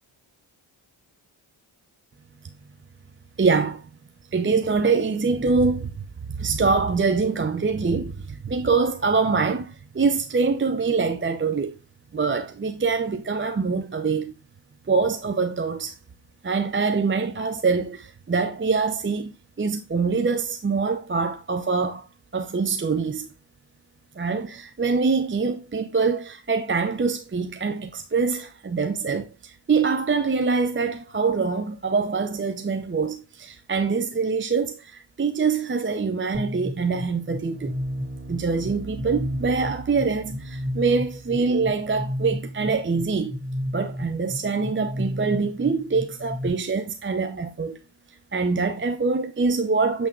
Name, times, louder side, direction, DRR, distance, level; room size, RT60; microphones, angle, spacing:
voice 1, 3.4-3.9 4.3-6.0 6.4-11.7 12.1-14.3 14.9-16.0 16.4-22.1 22.3-23.3 24.2-37.8 38.3-43.4 43.7-47.8 48.3-50.1, right 4 dB, 25° right, 0.7 m, -24 dB
sound 1, 36.3-46.5, equal, 10° right, 2.5 m, -32 dB
7.5 x 3.5 x 3.7 m
cardioid pair, 45°, 48 cm